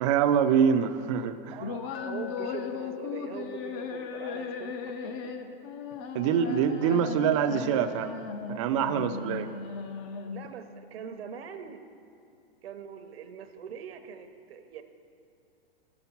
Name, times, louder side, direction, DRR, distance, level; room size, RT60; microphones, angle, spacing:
voice 1, 0.0-1.6 6.1-9.5, right 8 dB, 35° right, 10 dB, 0.4 m, -25 dB
sound 1, 1.6-10.6, left 5 dB, 30° left, 0.5 m, -37 dB
Glass, 1.9-6.1, left 11 dB, 75° left, 0.5 m, -44 dB
voice 2, 2.0-5.1 10.3-11.8 12.6-14.8, right 6 dB, 75° right, 8 dB, 0.8 m, -42 dB
12.5 x 6.0 x 5.5 m, 2.5 s
hypercardioid pair, 145°, 31 cm